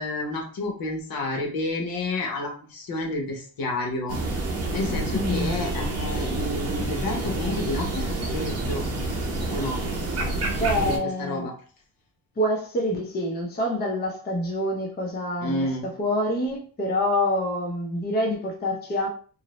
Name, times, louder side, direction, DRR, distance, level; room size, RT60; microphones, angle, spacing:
voice 1, 0.0-4.2 4.7-8.8 9.5-9.8 10.1-10.3 10.6-11.5 15.4-15.9, left 2 dB, 60° left, 0.9 m, -30 dB
sound 1, 4.1-11.0, right 2 dB, 40° right, 0.8 m, -28 dB
voice 2, 5.1-5.5 10.6-11.5 12.4-19.1, left 1 dB, 25° left, 0.6 m, -26 dB
2.6 x 2.0 x 2.9 m
cardioid pair, 110°, 39 cm